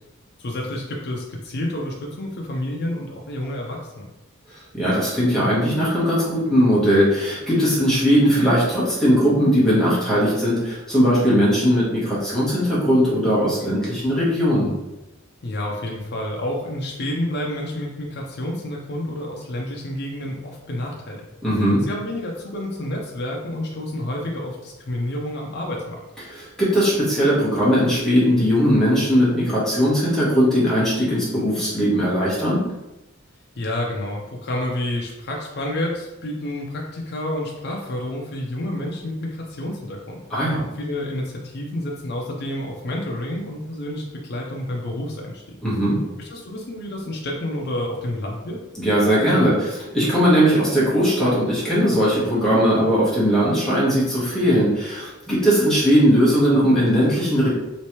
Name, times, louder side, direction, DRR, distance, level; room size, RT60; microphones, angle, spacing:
voice 1, 0.4-4.1 15.4-21.2 21.8-26.0 33.6-40.2 40.7-45.6 46.2-48.6, left 1 dB, 50° left, -1 dB, 0.5 m, -29 dB
voice 2, 4.7-14.7 21.4-21.8 26.3-32.7 40.3-40.7 45.6-46.0 48.8-57.5, equal, 5° left, -9 dB, 1.2 m, -19 dB
3.1 x 3.1 x 2.9 m, 0.98 s
head